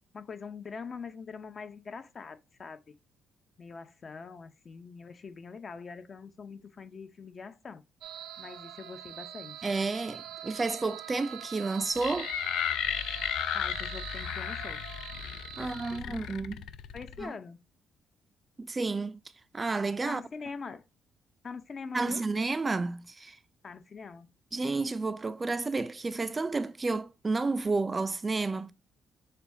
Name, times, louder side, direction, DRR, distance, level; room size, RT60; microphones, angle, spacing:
voice 1, 0.1-3.0 3.6-7.8 8.4-9.7 13.5-14.8 15.6-16.3 16.9-17.6 20.0-20.8 21.4-22.2 23.6-24.3, left 5 dB, 45° left, 0.7 m, -43 dB
sound 1, 8.0-16.0, right 11 dB, 85° right, 0.4 m, -44 dB
voice 2, 9.6-12.3 15.6-16.6 17.2-17.4 18.6-19.2 19.5-20.2 21.9-23.4 24.5-28.7, right 3 dB, 25° right, 0.4 m, -31 dB
sound 2, 12.0-17.2, left 10 dB, 80° left, 0.3 m, -34 dB
6.6 x 2.3 x 2.7 m
cardioid pair, 90°, 0 cm